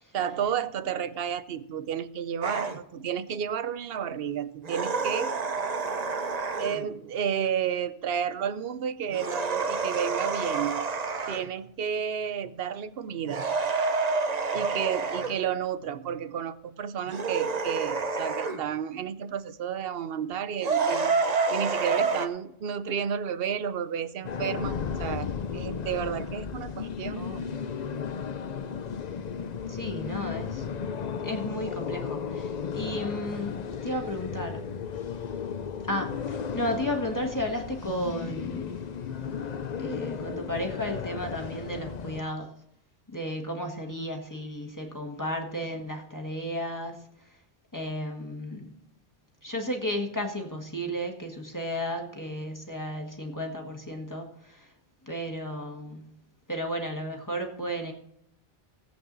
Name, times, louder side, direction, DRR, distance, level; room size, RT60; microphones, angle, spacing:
voice 1, 0.1-5.3 6.6-10.9 11.3-13.4 14.5-21.1 21.5-27.3, right 8 dB, 70° right, 14 dB, 0.9 m, -31 dB
sound 1, 2.4-2.8 4.6-6.9 9.1-11.5 13.3-15.4 17.1-18.6 20.6-22.3, right 4 dB, 45° right, 0.9 m, -28 dB
sound 2, 24.2-42.2, left 6 dB, 50° left, 0.7 m, -34 dB
voice 2, 29.7-30.7 31.2-34.7 35.9-38.8 39.8-42.5 43.1-47.4 47.7-48.7 49.4-54.7 55.0-56.2 56.5-57.9, equal, 20° left, 2 dB, 1.6 m, -33 dB
18.0 x 8.2 x 4.0 m, 0.75 s
omnidirectional pair, 1.1 m